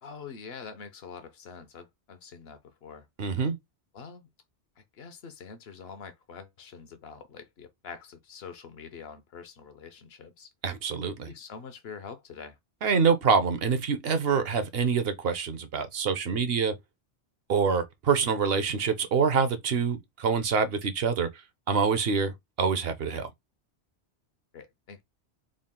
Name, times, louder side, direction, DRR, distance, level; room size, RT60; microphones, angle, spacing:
voice 1, 0.0-3.1 3.9-4.3 4.9-10.5 11.3-12.6 24.5-25.0, left 6 dB, 65° left, 1.0 m, -45 dB
voice 2, 3.2-3.6 10.6-11.3 12.8-16.7 17.5-23.3, right 5 dB, 65° right, 0.9 m, -26 dB
3.7 x 2.3 x 3.6 m
omnidirectional pair, 1.1 m